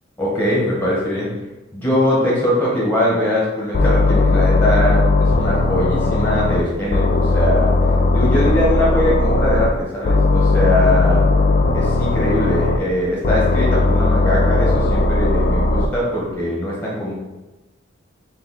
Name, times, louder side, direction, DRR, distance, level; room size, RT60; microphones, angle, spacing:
voice 1, 0.2-1.3 1.7-7.7 8.1-11.2 11.7-17.1, left 1 dB, 10° left, -6 dB, 1.4 m, -21 dB
sound 1, 3.7-6.6 6.9-9.7 10.0-12.8 13.2-15.9, left 2 dB, 40° left, 0.4 m, -17 dB
3.8 x 2.7 x 4.2 m, 1.1 s
head